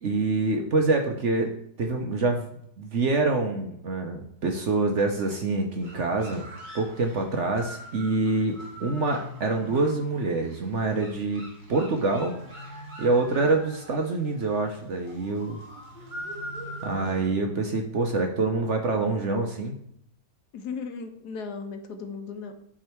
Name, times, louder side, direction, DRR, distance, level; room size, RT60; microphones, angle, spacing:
voice 1, 0.0-1.5 1.8-2.5 2.8-6.4 6.7-11.4 11.7-12.3 13.0-15.6 16.8-19.7, right 3 dB, 55° right, 3 dB, 0.9 m, -26 dB
sound 1, 5.8-17.3, equal, 25° right, 2.7 m, -43 dB
sound 2, 12.1-14.0 15.8-17.7, equal, 45° left, 1.5 m, -45 dB
voice 2, 20.5-22.5, left 5 dB, 70° left, 6 dB, 1.4 m, -36 dB
11.0 x 3.7 x 4.5 m, 0.71 s
omnidirectional pair, 1.9 m